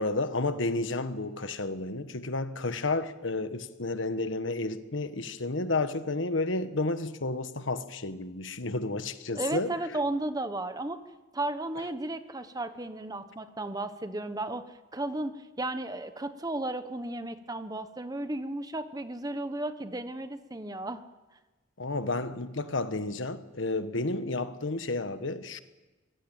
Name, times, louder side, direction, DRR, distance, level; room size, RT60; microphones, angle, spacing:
voice 1, 0.0-9.7 21.8-25.6, left 2 dB, 75° left, 1.4 m, -31 dB
voice 2, 9.3-11.0 11.3-21.0, right 2 dB, 20° right, 1.1 m, -34 dB
24.0 x 18.0 x 9.0 m
head